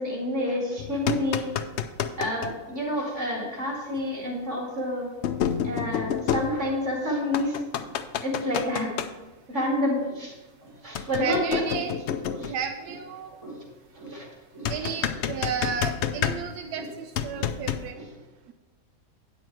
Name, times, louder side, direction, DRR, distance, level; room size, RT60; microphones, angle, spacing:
voice 1, 0.0-1.5 2.2-5.1 5.6-7.5 7.8-7.9 8.2-8.9 9.5-10.3 10.6-11.6 12.3-12.5 13.4-13.6 14.0-14.2 14.5-14.7 17.3-17.4 17.9-18.1, left 1 dB, 50° right, -2 dB, 2.6 m, -29 dB
sound 1, 0.8-2.5 4.0-4.1 5.2-7.0 7.3-9.1 11.0-12.7 14.7-16.7 17.2-17.9, left 8 dB, 70° left, 0.6 m, -29 dB
voice 2, 11.2-11.9 12.4-13.4 14.7-18.0, right 7 dB, 90° right, 6 dB, 1.2 m, -33 dB
9.2 x 7.0 x 4.5 m, 1.2 s
omnidirectional pair, 1.6 m